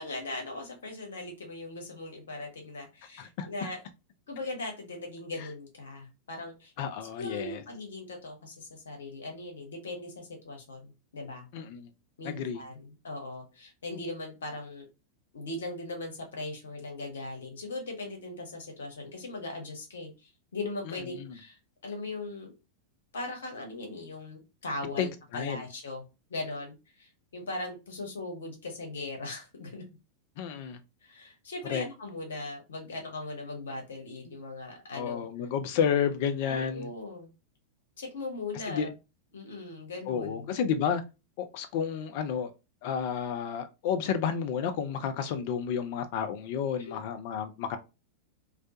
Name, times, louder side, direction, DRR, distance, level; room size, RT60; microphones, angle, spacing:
voice 1, 0.0-3.8 4.3-6.7 7.0-11.5 12.2-14.9 15.3-21.6 21.8-22.5 23.1-26.0 26.3-29.8 31.0-35.3 36.5-37.3 38.0-38.9 39.3-40.5 46.8-46.9, left 2 dB, 65° left, 0.8 m, -39 dB
voice 2, 6.8-7.6 11.5-11.9 12.2-12.6 21.1-21.4 25.0-25.1 25.3-25.7 30.4-30.8 31.7-31.9 34.9-36.9 38.7-38.9 40.1-41.0 41.4-42.5 42.8-47.8, left 7 dB, 50° left, 0.4 m, -31 dB
2.3 x 2.2 x 2.7 m
figure-of-eight pair, 90°, 0 cm